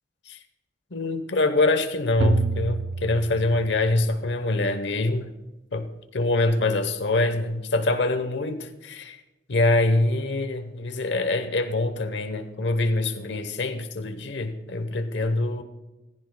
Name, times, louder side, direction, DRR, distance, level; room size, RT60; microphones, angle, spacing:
voice 1, 0.9-5.3 5.7-9.2 9.5-15.6, left 2 dB, 65° left, 0.9 m, -24 dB
sound 1, 2.2-4.1, right 4 dB, 80° right, 0.5 m, -29 dB
16.5 x 15.0 x 2.2 m
head